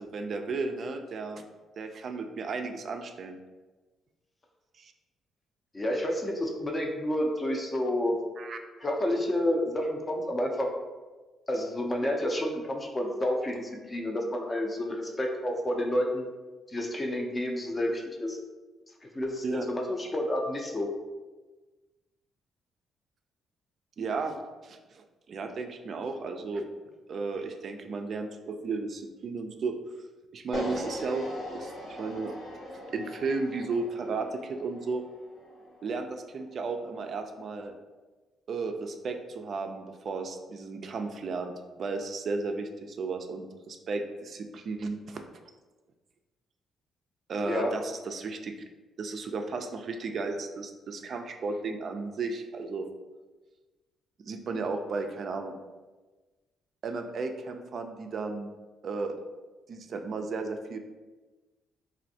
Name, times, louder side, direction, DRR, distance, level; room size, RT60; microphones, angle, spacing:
voice 1, 0.0-1.4 1.8-3.4 4.8-4.9 8.4-8.6 19.4-19.7 24.0-24.4 24.6-26.7 27.1-29.8 30.3-32.3 32.9-35.0 35.8-37.7 38.5-41.5 41.8-45.3 47.3-48.5 49.0-52.9 54.2-55.6 56.8-58.5 58.8-59.2 59.7-60.8, right 3 dB, 55° right, 5 dB, 0.3 m, -34 dB
voice 2, 5.7-8.2 8.8-10.7 11.5-16.2 16.7-18.4 19.1-20.9 47.5-47.7, left 1 dB, 25° left, 1 dB, 0.5 m, -29 dB
sound 1, 30.5-36.7, equal, 65° left, 1.1 m, -40 dB
3.1 x 2.5 x 2.7 m, 1.2 s
cardioid pair, 90°, 0 cm